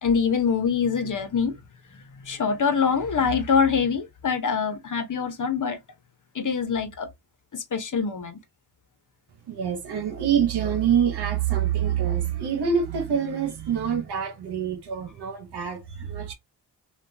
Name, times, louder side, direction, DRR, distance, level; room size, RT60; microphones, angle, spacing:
voice 1, 0.0-1.6 1.9-5.8 6.3-7.1 7.5-8.4, left 6 dB, 50° left, 1.1 m, -24 dB
voice 2, 9.5-16.3, right 8 dB, 80° right, 1.1 m, -25 dB
3.5 x 2.6 x 2.6 m
cardioid pair, 70°, 39 cm